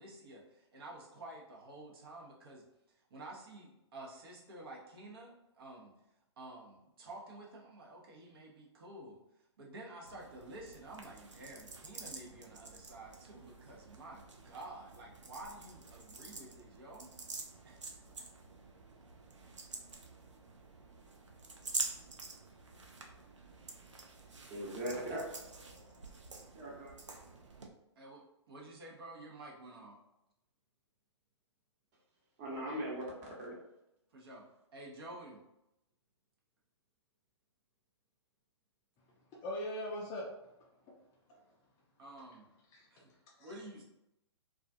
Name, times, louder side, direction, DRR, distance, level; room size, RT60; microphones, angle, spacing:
voice 1, 0.0-2.7 3.1-5.9 6.4-9.2 9.6-17.1 17.6-17.8 18.1-18.3 28.0-30.0 34.1-35.4 42.0-42.5 42.9-43.1 43.4-43.8, right 2 dB, 55° right, -3 dB, 0.8 m, -50 dB
sound 1, 10.0-27.7, right 3 dB, 90° right, 0.5 m, -47 dB
voice 2, 24.5-25.3 25.6-26.0 26.5-26.9 32.4-33.0 33.4-33.5, right 1 dB, 35° right, -4 dB, 1.0 m, -40 dB
voice 3, 39.3-40.9 41.3-41.4 42.7-43.5, left 1 dB, 20° left, -2 dB, 0.4 m, -43 dB
2.3 x 2.3 x 2.5 m, 0.86 s
figure-of-eight pair, 125°, 15 cm